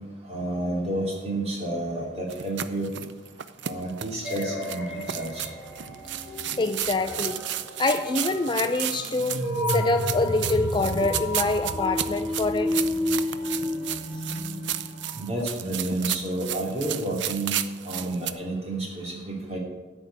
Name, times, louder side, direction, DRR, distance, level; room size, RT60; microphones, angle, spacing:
voice 1, 0.3-2.9 3.6-5.5 15.2-17.6 17.8-19.6, right 1 dB, 35° right, -2 dB, 2.9 m, -30 dB
sound 1, 2.3-18.3, right 11 dB, 70° right, 0.5 m, -33 dB
sound 2, 4.2-15.3, left 1 dB, 10° right, 3.2 m, -31 dB
voice 2, 6.6-7.4 7.8-9.4 9.7-12.7, left 2 dB, 25° left, 7 dB, 0.4 m, -25 dB
13.5 x 5.4 x 8.4 m, 1.2 s
head